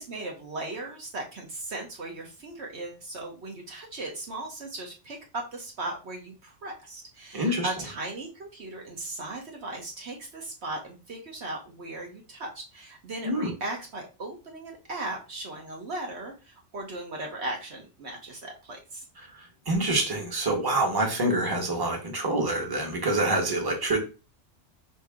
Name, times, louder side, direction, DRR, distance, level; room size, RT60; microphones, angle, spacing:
voice 1, 0.0-19.1, right 2 dB, 65° right, 1 dB, 1.2 m, -37 dB
voice 2, 7.3-7.7 13.2-13.5 19.3-24.0, right 2 dB, 20° right, 0 dB, 1.2 m, -26 dB
5.2 x 2.8 x 3.6 m, 0.31 s
omnidirectional pair, 1.2 m